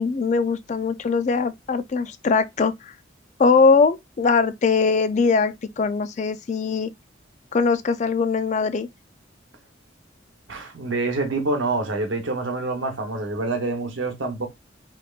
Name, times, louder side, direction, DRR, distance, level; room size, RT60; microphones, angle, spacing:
voice 1, 0.0-2.9 3.4-6.9 7.5-8.9, left 4 dB, 40° left, 0.3 m, -21 dB
voice 2, 10.5-14.5, right 2 dB, 90° right, 0.9 m, -26 dB
3.4 x 2.9 x 2.4 m
head